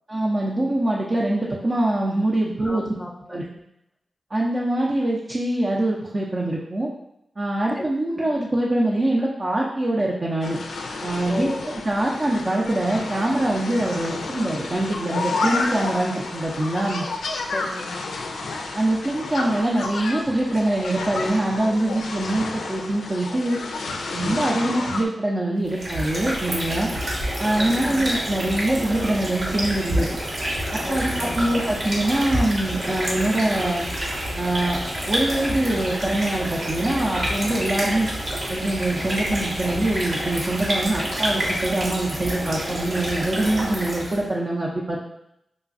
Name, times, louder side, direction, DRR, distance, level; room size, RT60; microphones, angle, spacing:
voice 1, 0.1-2.8 3.3-3.4 4.3-6.9 7.4-10.6 11.0-11.5 11.8-17.1 18.7-23.6 24.1-26.9 27.4-30.2 30.7-33.8 34.4-34.8 35.1-38.1 38.5-45.0, right 1 dB, 45° right, -4 dB, 0.6 m, -24 dB
voice 2, 2.6-3.6 7.8-7.9 11.3-11.6 17.5-18.1 27.6-28.1 30.8-31.5, left 2 dB, 30° left, 4 dB, 0.5 m, -34 dB
sound 1, 10.4-25.1, left 3 dB, 90° left, 0.3 m, -31 dB
sound 2, 25.6-44.3, equal, 70° right, 1.2 m, -28 dB
4.9 x 2.2 x 2.5 m, 0.82 s
cardioid pair, 45°, 0 cm